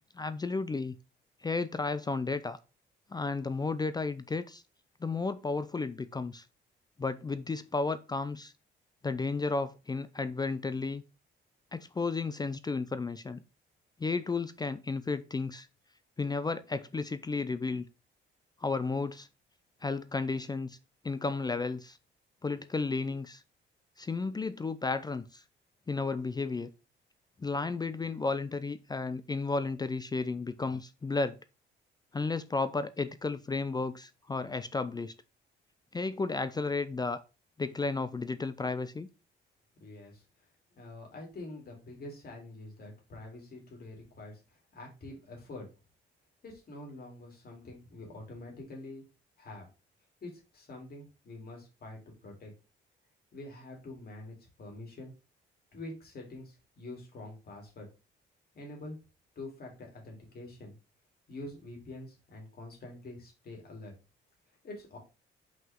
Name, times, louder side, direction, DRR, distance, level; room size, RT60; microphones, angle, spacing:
voice 1, 0.1-1.0 1.4-2.6 3.1-4.6 5.0-6.4 7.0-8.5 9.0-11.0 11.7-13.4 14.0-15.7 16.2-17.9 18.6-19.3 19.8-20.8 21.0-22.0 22.4-23.4 24.0-25.4 25.9-26.7 27.4-31.4 32.1-35.1 35.9-37.2 37.6-39.1, left 3 dB, 20° left, 0.4 m, -33 dB
voice 2, 39.8-40.2 40.7-44.4 44.7-45.7 46.4-49.1 49.4-49.7 50.2-52.5 53.3-55.1 55.7-57.9 58.5-59.0 59.3-60.7 61.3-63.9 64.6-65.0, left 2 dB, 50° left, 3.3 m, -46 dB
5.6 x 5.5 x 3.7 m
cardioid pair, 90°, 20 cm